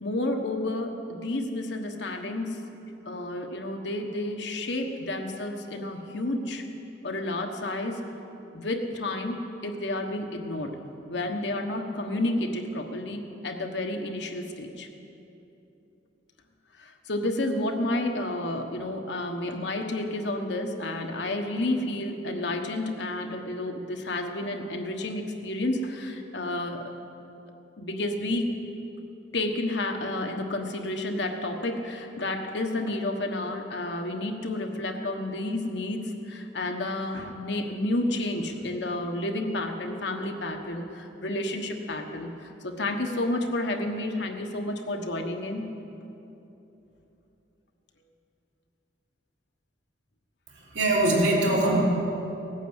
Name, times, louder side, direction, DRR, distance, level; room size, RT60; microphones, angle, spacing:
voice 1, 0.0-2.6 3.0-6.6 7.0-8.0 8.5-10.8 11.1-14.9 16.8-26.9 27.8-28.5 29.3-45.6, left 1 dB, 70° left, 3 dB, 1.4 m, -30 dB
voice 2, 50.5-51.8, right 1 dB, 75° right, -4 dB, 3.5 m, -22 dB
17.5 x 9.3 x 8.1 m, 3.0 s
head